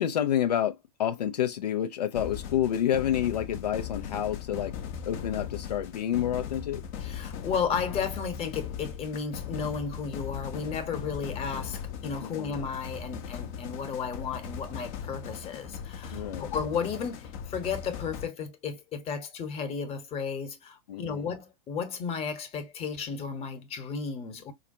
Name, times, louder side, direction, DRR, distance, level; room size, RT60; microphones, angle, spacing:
voice 1, 0.0-4.8 5.1-6.8 12.2-12.6 16.1-16.5 20.9-21.3, left 10 dB, 80° left, 0.6 m, -29 dB
sound 1, 2.1-18.3, left 7 dB, 50° left, 0.9 m, -39 dB
voice 2, 7.0-24.5, left 6 dB, 30° left, 1.2 m, -34 dB
4.9 x 2.3 x 2.7 m
hypercardioid pair, 105°, 20 cm